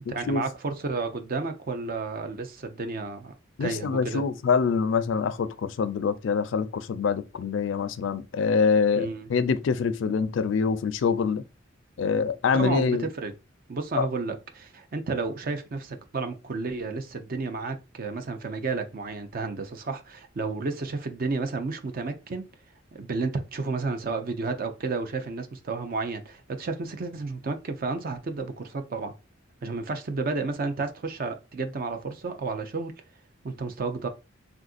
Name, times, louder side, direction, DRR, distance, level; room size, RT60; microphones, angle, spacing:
voice 1, 0.1-3.3 3.6-4.2 9.0-9.3 12.5-13.3 13.7-22.4 22.9-29.1 29.6-32.9 33.4-34.1, right 3 dB, 50° right, 0.5 m, -31 dB
voice 2, 3.6-11.4 12.0-13.1 14.0-14.1, left 5 dB, 70° left, 0.4 m, -25 dB
3.5 x 2.5 x 2.3 m
head